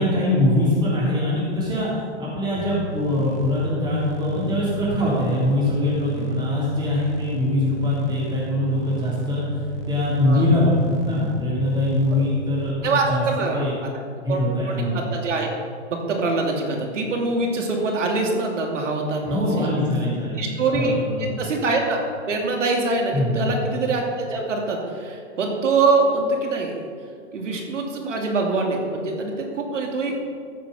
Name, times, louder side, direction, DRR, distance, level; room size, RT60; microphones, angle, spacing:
voice 1, 0.0-1.9 2.2-9.4 9.9-13.2 13.5-13.7 14.2-15.0 19.2-20.4 20.7-21.3 23.1-23.5, left 1 dB, 10° right, -8 dB, 3.5 m, -22 dB
sound 1, 2.6-12.7, right 4 dB, 50° right, 1.4 m, -33 dB
voice 2, 12.8-13.9 14.3-15.5 15.9-19.8 20.4-26.8 27.3-30.1, right 3 dB, 85° right, 1 dB, 2.6 m, -24 dB
13.5 x 7.1 x 5.4 m, 2.2 s
hypercardioid pair, 125°, 36 cm